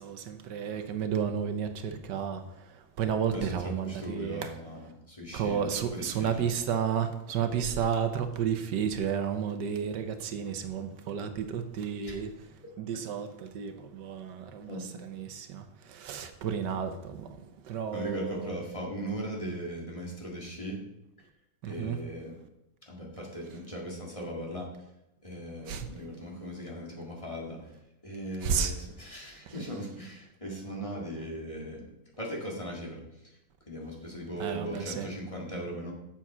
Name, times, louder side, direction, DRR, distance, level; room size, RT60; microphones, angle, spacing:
voice 1, 0.0-2.4 3.0-4.5 5.3-12.3 12.8-13.3 13.5-15.6 16.0-17.3 17.7-18.6 21.6-22.0 25.7-25.9 28.4-28.7 34.4-35.1, right 7 dB, 85° right, 1.5 m, -32 dB
voice 2, 3.3-6.5 12.0-12.2 14.7-15.0 17.9-20.8 21.7-22.4 22.9-24.7 25.2-27.6 28.0-31.9 32.2-33.0 33.7-35.9, equal, 20° left, 1.9 m, -38 dB
7.4 x 7.3 x 5.5 m
omnidirectional pair, 1.8 m